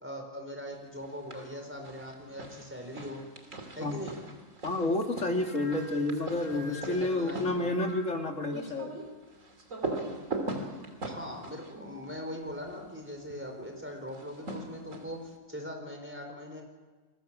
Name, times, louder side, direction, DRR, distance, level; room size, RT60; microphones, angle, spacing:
voice 1, 0.0-3.2 3.7-4.2 6.5-7.7 11.0-15.2 15.5-16.6, equal, 10° right, 3 dB, 4.7 m, -40 dB
sound 1, 1.0-1.5 1.8-12.8 14.1-15.3, right 2 dB, 60° right, 3.2 m, -41 dB
voice 2, 4.6-8.9, left 2 dB, 60° left, 3 dB, 2.9 m, -30 dB
sound 2, 5.3-8.4, left 2 dB, 40° left, 7.2 m, -48 dB
29.5 x 21.0 x 7.6 m, 1.3 s
omnidirectional pair, 1.5 m